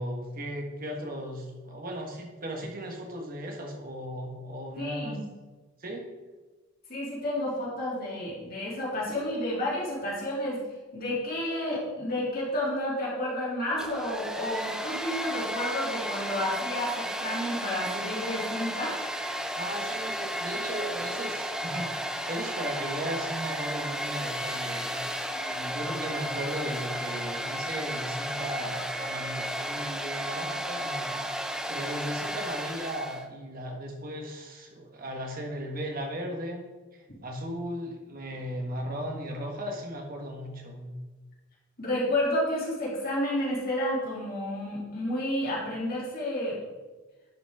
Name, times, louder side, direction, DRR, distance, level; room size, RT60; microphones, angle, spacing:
voice 1, 0.0-5.2 5.8-6.1 19.5-31.1 31.7-36.7 36.9-41.0, equal, 40° right, 1 dB, 1.3 m, -36 dB
voice 2, 4.8-5.2 6.9-10.6 10.9-19.0 37.1-37.2 41.8-46.6, left 1 dB, 45° left, -5 dB, 2.6 m, -31 dB
Domestic sounds home sounds, 13.7-33.2, equal, 5° right, 0.4 m, -33 dB
10.5 x 5.2 x 3.5 m, 1.2 s
head